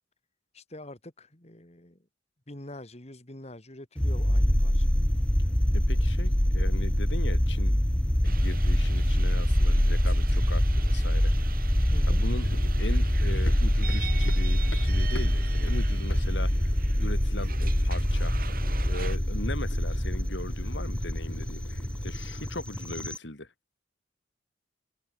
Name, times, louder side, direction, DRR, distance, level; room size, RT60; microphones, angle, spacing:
voice 1, 0.5-2.0 2.5-5.1 11.9-12.2, left 1 dB, 35° left, 2.6 m, -45 dB
sound 1, 4.0-23.2, equal, 5° left, 0.5 m, -25 dB
voice 2, 5.7-7.8 8.2-11.5 12.1-12.5 12.8-16.7 17.0-18.4 18.9-23.5, left 1 dB, 70° left, 5.6 m, -39 dB
sound 2, 8.2-19.2, right 7 dB, 50° right, 3.6 m, -43 dB
Run, 12.4-22.5, left 1 dB, 90° left, 5.1 m, -45 dB
head